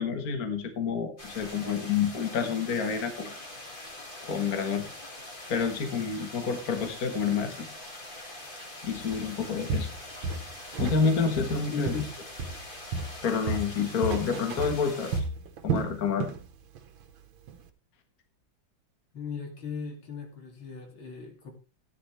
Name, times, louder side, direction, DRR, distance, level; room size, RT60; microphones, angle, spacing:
voice 1, 0.0-3.3 4.2-4.9 5.5-7.7 8.8-9.9 10.8-12.0 13.2-15.1 15.6-16.3, left 6 dB, 50° left, 6 dB, 1.8 m, -28 dB
sound 1, 1.2-15.2, left 1 dB, 25° left, 2.0 m, -43 dB
Walk footsteps, 9.1-9.3 9.7-11.1 11.4-12.7 12.9-16.5 16.8-17.0 17.5-17.6, right 4 dB, 85° right, 1.9 m, -32 dB
voice 2, 11.7-12.1 14.2-14.5 19.1-21.5, left 6 dB, 85° left, 3 dB, 3.2 m, -37 dB
14.0 x 10.0 x 3.2 m, 0.31 s
omnidirectional pair, 2.1 m